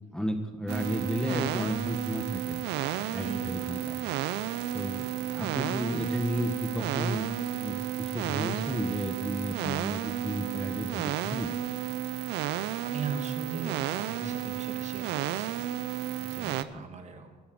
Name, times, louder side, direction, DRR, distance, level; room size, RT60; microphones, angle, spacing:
voice 1, 0.1-2.6 3.0-4.0 4.7-7.3 7.6-11.5 16.7-16.8, equal, 5° left, 6 dB, 1.4 m, -33 dB
sound 1, 0.7-16.6, right 13 dB, 85° right, 0.7 m, -32 dB
voice 2, 3.2-3.6 12.8-15.6 16.2-17.4, right 5 dB, 45° right, 6 dB, 2.2 m, -39 dB
20.5 x 8.4 x 7.9 m, 1.3 s
cardioid pair, 110°, 17 cm